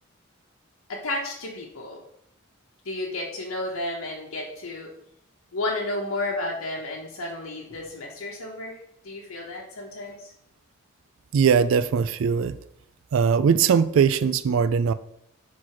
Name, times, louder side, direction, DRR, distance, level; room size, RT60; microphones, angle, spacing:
voice 1, 0.9-2.0 2.8-4.9 5.5-8.8 9.0-10.3, left 2 dB, 90° left, -2 dB, 1.1 m, -32 dB
voice 2, 11.3-12.6 13.1-14.9, right 6 dB, 75° right, 13 dB, 0.3 m, -20 dB
4.8 x 4.0 x 5.8 m, 0.75 s
head